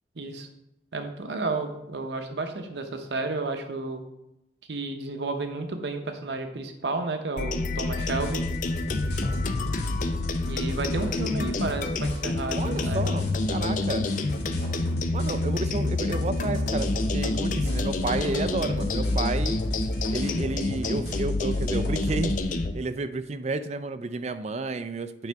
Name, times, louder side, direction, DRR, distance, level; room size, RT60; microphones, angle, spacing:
voice 1, 0.2-0.5 0.9-4.1 4.7-8.4 10.4-12.6 12.9-13.0 15.8-15.9, right 3 dB, 75° right, 6 dB, 0.8 m, -32 dB
sound 1, 7.4-22.7, left 2 dB, 45° left, 0.5 m, -28 dB
sound 2, 8.0-22.4, equal, 70° left, 1.7 m, -38 dB
voice 2, 12.6-14.1 15.1-19.6 20.1-22.4 22.7-25.3, right 3 dB, 40° right, 11 dB, 0.4 m, -31 dB
9.1 x 5.1 x 3.5 m, 0.86 s
head